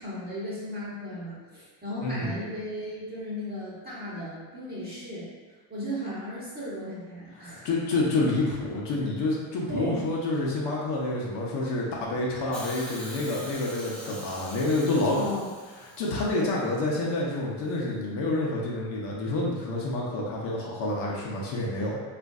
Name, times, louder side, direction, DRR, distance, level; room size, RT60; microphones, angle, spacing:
voice 1, 0.0-5.3 5.7-7.7 9.7-10.0 15.1-15.5 16.3-16.5, equal, 20° right, -9 dB, 1.0 m, -35 dB
voice 2, 2.0-2.3 7.4-15.3 15.8-22.0, left 2 dB, 60° left, -4 dB, 0.8 m, -28 dB
Hiss, 12.5-16.7 17.7-17.8, equal, ahead, 0.5 m, -43 dB
3.8 x 2.5 x 2.3 m, 1.4 s
cardioid pair, 140°, 49 cm